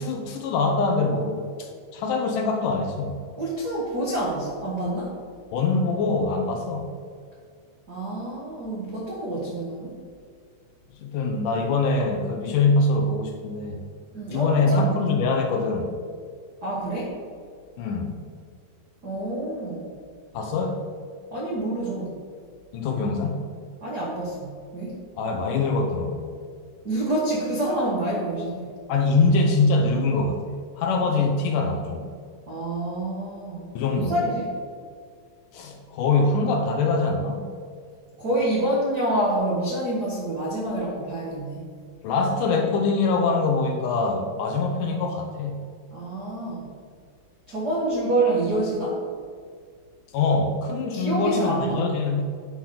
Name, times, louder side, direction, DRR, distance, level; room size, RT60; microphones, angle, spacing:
voice 1, 0.0-1.7 1.9-3.2 5.5-6.9 11.0-13.8 14.3-15.9 17.8-18.2 20.3-20.8 22.7-23.4 25.2-26.4 28.9-30.4 30.8-32.1 33.8-34.2 35.5-37.5 42.0-45.6 50.1-52.2, left 3 dB, 75° left, 3 dB, 2.1 m, -23 dB
voice 2, 3.4-5.2 7.9-9.9 14.1-14.9 16.6-17.2 19.0-19.9 21.3-22.1 23.8-25.0 26.8-28.8 32.5-34.5 38.2-41.7 45.9-46.7 47.5-49.0 50.8-51.9, right 1 dB, 75° right, -5 dB, 0.9 m, -27 dB
10.5 x 3.8 x 5.8 m, 2.1 s
omnidirectional pair, 4.2 m